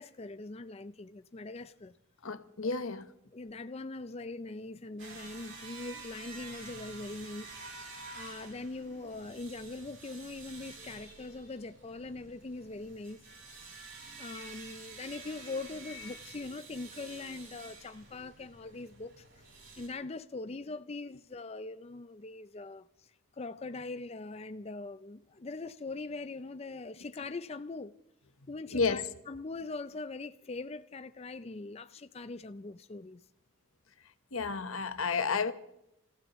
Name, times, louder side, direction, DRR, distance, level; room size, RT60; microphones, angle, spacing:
voice 1, 0.0-1.9 2.6-2.7 3.3-7.7 8.1-13.3 14.2-19.2 19.8-28.0 28.5-33.2, left 3 dB, 30° left, 0.5 m, -42 dB
voice 2, 2.2-3.1 28.7-29.0 34.3-35.5, left 4 dB, 85° left, 1.1 m, -31 dB
sound 1, 5.0-19.9, right 3 dB, 65° right, 5.6 m, -49 dB
29.5 x 15.0 x 3.1 m
head